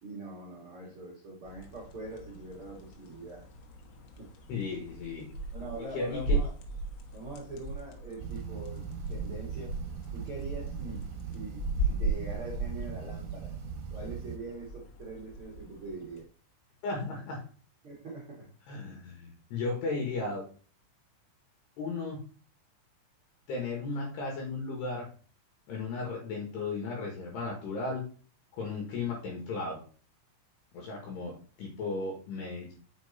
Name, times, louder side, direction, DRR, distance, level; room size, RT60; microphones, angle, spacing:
voice 1, 0.0-3.5 4.2-4.3 5.5-6.5 7.1-9.8 10.1-13.6 13.9-16.3 17.8-18.5, right 2 dB, 65° right, -4 dB, 1.3 m, -43 dB
sound 1, 1.4-16.2, right 2 dB, 85° left, 3.8 m, -37 dB
voice 2, 4.5-5.3 5.9-6.4 16.8-17.4 18.7-20.4 21.8-22.2 23.5-25.1 25.7-28.0 28.5-29.8 30.7-31.3 31.6-32.7, left 3 dB, 65° left, 0 dB, 3.3 m, -35 dB
sound 2, 8.2-14.4, right 8 dB, 80° right, 3.0 m, -40 dB
7.2 x 5.8 x 4.1 m, 0.39 s
omnidirectional pair, 5.9 m